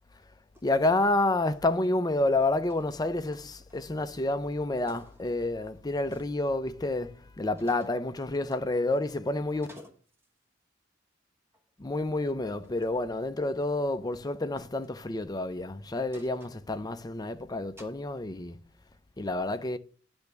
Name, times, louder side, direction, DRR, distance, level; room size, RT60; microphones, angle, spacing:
sound 1, 0.5-0.8 1.0-2.2 2.6-4.0 4.4-4.6 4.9-6.4 7.5-8.0 8.5-9.2 9.5-10.4 11.5-11.7 12.5-13.0 14.6-15.0 16.1-17.3 17.8-18.0, left 1 dB, 15° right, 1.0 m, -56 dB
voice 1, 0.6-9.7 11.8-18.6 19.2-19.8, left 2 dB, 20° left, 0.5 m, -29 dB
10.0 x 3.5 x 6.6 m
head